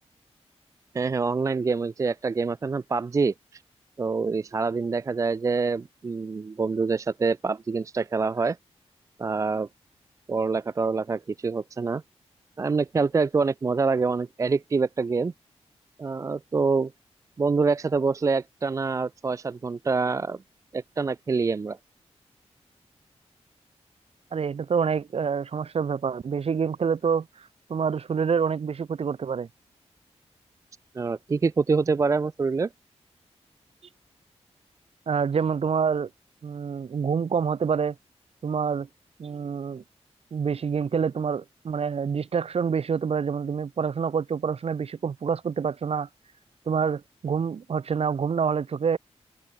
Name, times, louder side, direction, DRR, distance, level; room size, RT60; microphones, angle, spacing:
voice 1, 0.9-3.6 4.0-8.6 9.2-9.7 10.3-12.0 12.6-15.3 16.0-16.9 17.4-20.4 20.7-21.8 30.9-32.7, right 4 dB, 30° right, 0.4 m, -26 dB
voice 2, 24.3-27.3 27.7-29.5 35.1-36.1 36.4-38.0 38.4-38.9 39.2-39.8 40.3-46.1 46.7-49.0, right 6 dB, 60° right, 2.3 m, -27 dB
wide cardioid pair, 150°, 11 cm